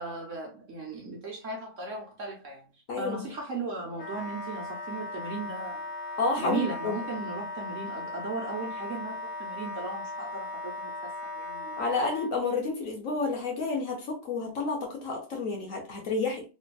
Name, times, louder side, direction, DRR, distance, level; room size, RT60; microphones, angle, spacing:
voice 1, 0.0-5.9 6.4-11.8, right 3 dB, 55° right, 1.0 m, -37 dB
Wind instrument woodwind instrument, 3.9-12.3, left 2 dB, 80° left, 1.4 m, -37 dB
voice 2, 6.2-6.9 11.8-16.4, left 3 dB, 55° left, 1.1 m, -30 dB
3.4 x 2.8 x 2.2 m
omnidirectional pair, 1.8 m